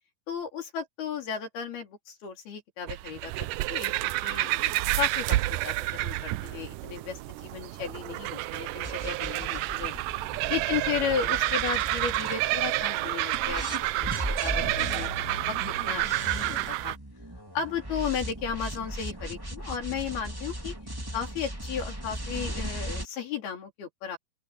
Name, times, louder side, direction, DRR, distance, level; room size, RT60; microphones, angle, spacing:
voice 1, 0.3-5.4 5.6-9.9 10.5-13.7 14.0-15.6 15.8-17.0 17.5-20.7 21.1-24.2, left 7 dB, 80° left, 5.9 m, -34 dB
sound 1, 2.9-17.0, right 18 dB, 85° right, 1.9 m, -29 dB
sound 2, 8.8-12.9 13.3-23.1, right 1 dB, 5° right, 2.1 m, -37 dB
sound 3, 13.8-17.2, left 3 dB, 35° left, 6.4 m, -43 dB
open air
omnidirectional pair, 4.4 m